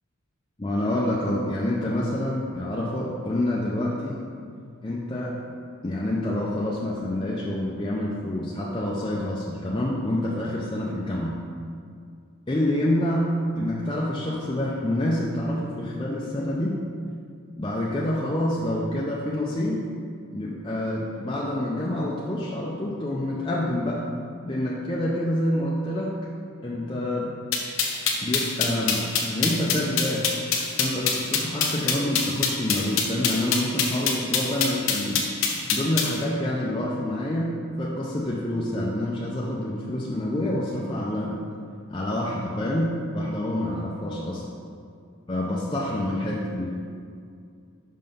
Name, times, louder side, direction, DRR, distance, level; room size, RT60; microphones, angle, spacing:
voice 1, 0.6-4.2 4.8-5.4 5.8-11.3 12.5-16.8 17.6-19.8 20.3-26.2 26.6-27.4 28.2-30.3 30.8-35.3 35.7-41.4 41.9-44.5 45.3-46.7, left 1 dB, 20° left, -5 dB, 0.5 m, -27 dB
sound 1, 27.5-36.1, left 6 dB, 85° left, 0.9 m, -24 dB
5.6 x 5.3 x 5.4 m, 2.3 s
head